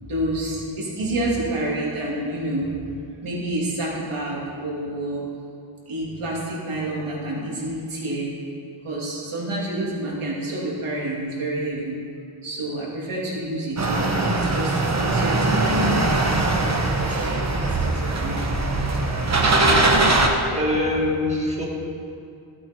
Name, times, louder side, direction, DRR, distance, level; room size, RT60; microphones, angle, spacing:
voice 1, 0.0-2.7 3.2-5.2 5.9-8.3 8.8-12.0 12.4-16.3 17.1-18.4, right 1 dB, 90° right, -5 dB, 3.0 m, -28 dB
sound 1, 13.8-20.3, right 2 dB, 35° right, 1.2 m, -21 dB
voice 2, 20.5-21.7, left 1 dB, 15° right, -3 dB, 2.1 m, -23 dB
15.5 x 8.6 x 4.6 m, 2.5 s
wide cardioid pair, 120°, 48 cm